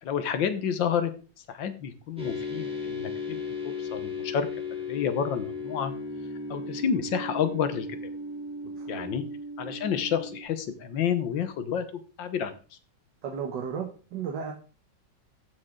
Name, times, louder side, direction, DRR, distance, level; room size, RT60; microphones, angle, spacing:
voice 1, 0.0-1.1 1.5-5.9 6.5-7.9 8.9-9.2 9.6-12.8, left 8 dB, 80° left, 10 dB, 1.8 m, -30 dB
sound 1, 2.2-10.4, left 3 dB, 5° right, 2.5 m, -36 dB
voice 2, 8.6-9.1 13.2-14.5, right 7 dB, 70° right, 1 dB, 1.9 m, -34 dB
14.5 x 6.5 x 3.8 m, 0.36 s
omnidirectional pair, 2.0 m